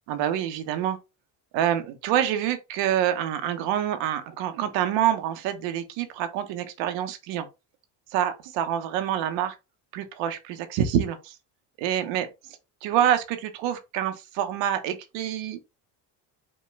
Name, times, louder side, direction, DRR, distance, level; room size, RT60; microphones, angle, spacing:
voice 1, 0.1-1.0 1.5-7.5 8.1-9.5 9.9-11.4 11.8-12.3 12.8-15.6, right 10 dB, 85° right, 0.9 m, -26 dB
5.4 x 2.3 x 3.2 m
cardioid pair, 100°, 43 cm